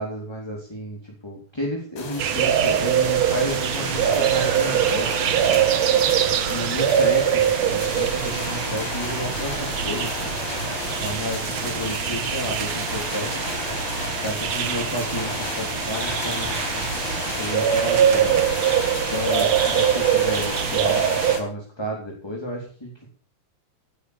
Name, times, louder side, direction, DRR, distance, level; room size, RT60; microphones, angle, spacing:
voice 1, 0.0-5.6 6.4-10.3 11.0-13.4 14.2-16.7 17.4-18.4 19.1-23.1, equal, 5° left, -1 dB, 3.1 m, -31 dB
sound 1, 2.0-21.4, left 4 dB, 80° left, 6.8 m, -32 dB
sound 2, 2.2-21.4, right 10 dB, 65° right, 1.8 m, -23 dB
16.5 x 10.0 x 7.1 m, 0.42 s
omnidirectional pair, 4.5 m